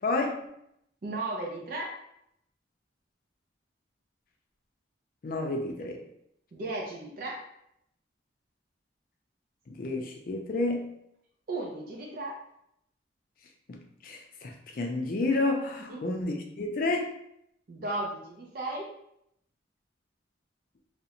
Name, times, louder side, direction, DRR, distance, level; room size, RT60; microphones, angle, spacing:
voice 1, 0.0-0.5 5.2-6.0 9.7-10.9 13.7-17.1, left 2 dB, 45° left, 2 dB, 0.4 m, -30 dB
voice 2, 1.0-2.0 6.5-7.4 11.5-12.4 15.9-16.0 17.7-18.9, right 2 dB, 50° right, -2 dB, 0.4 m, -35 dB
2.4 x 2.1 x 2.8 m, 0.76 s
head